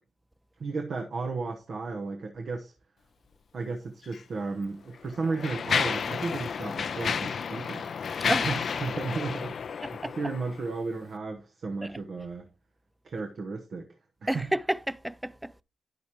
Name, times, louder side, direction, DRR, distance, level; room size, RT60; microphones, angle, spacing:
voice 1, 0.6-2.7 3.5-7.9 8.2-12.5 13.0-13.9 14.2-14.5, right 4 dB, 60° right, 1.0 m, -34 dB
Mechanisms, 4.0-4.2 4.9-10.7, left 6 dB, 65° left, 0.4 m, -31 dB
voice 2, 9.8-10.1 11.8-11.9 14.3-15.6, right 1 dB, 10° right, 0.4 m, -31 dB
10.0 x 8.0 x 2.9 m
supercardioid pair, 55°, 0 cm